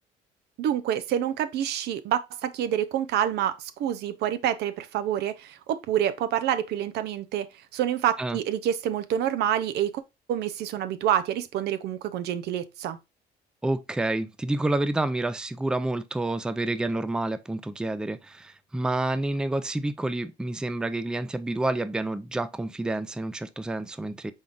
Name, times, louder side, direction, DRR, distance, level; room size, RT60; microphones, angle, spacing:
voice 1, 0.6-10.0 10.3-13.0, right 10 dB, 75° right, 0.6 m, -27 dB
voice 2, 13.6-24.3, right 2 dB, 5° right, 0.4 m, -29 dB
5.4 x 3.6 x 2.5 m
cardioid pair, 110°, 17 cm